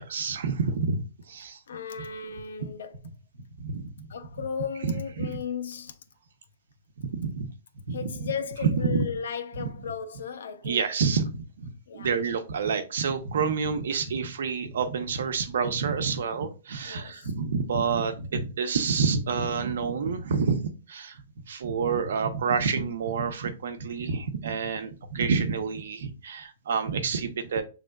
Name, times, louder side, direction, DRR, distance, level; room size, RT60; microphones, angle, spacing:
voice 1, 0.0-1.6 2.6-2.7 3.6-4.1 4.8-5.4 7.0-7.5 7.9-8.3 8.6-9.0 9.6-9.7 10.6-20.6 20.9-27.6, right 5 dB, 70° right, 0.9 m, -28 dB
voice 2, 1.7-2.9 4.1-6.0 7.9-10.9 11.9-12.1 16.9-17.3 24.6-25.0, left 6 dB, 80° left, 0.9 m, -35 dB
6.4 x 3.4 x 2.4 m
hypercardioid pair, 170°, 0 cm